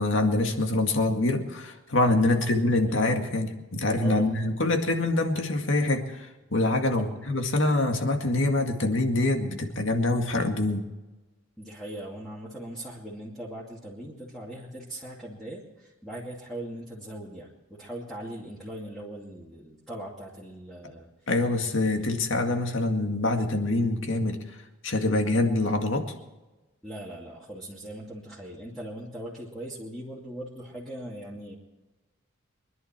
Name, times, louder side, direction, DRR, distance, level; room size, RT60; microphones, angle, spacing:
voice 1, 0.0-10.9 21.3-24.4 24.8-26.1, left 2 dB, 70° left, 4 dB, 2.1 m, -25 dB
voice 2, 2.2-2.5 2.8-3.1 4.0-4.4 6.9-7.2 11.6-17.5 17.8-21.1 26.8-31.6, right 1 dB, ahead, -7 dB, 2.5 m, -40 dB
24.5 x 11.0 x 4.5 m, 1.1 s
head